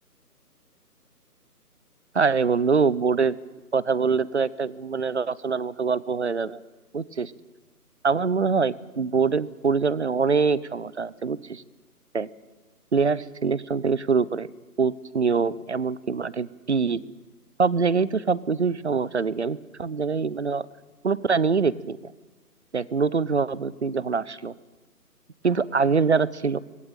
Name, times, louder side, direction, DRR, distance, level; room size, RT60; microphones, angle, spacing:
voice 1, 2.1-3.4 3.7-6.6 6.9-7.3 8.0-11.6 12.1-12.3 12.9-14.5 14.8-17.0 17.6-20.6 21.0-22.1 22.7-24.5 25.4-26.6, right 5 dB, 45° right, 20 dB, 0.8 m, -24 dB
20.0 x 17.5 x 9.0 m, 1.2 s
figure-of-eight pair, 155°, 47 cm